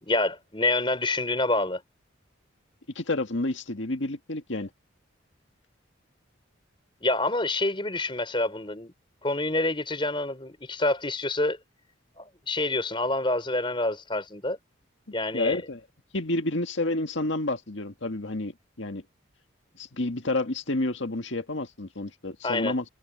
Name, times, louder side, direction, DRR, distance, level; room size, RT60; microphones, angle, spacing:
voice 1, 0.0-1.8 7.0-8.9 9.2-11.6 12.2-14.6 15.1-15.6 22.4-22.7, left 2 dB, 25° left, 4.4 m, -27 dB
voice 2, 3.0-4.7 15.3-15.8 16.1-19.0 19.8-22.9, left 2 dB, 65° left, 1.9 m, -29 dB
head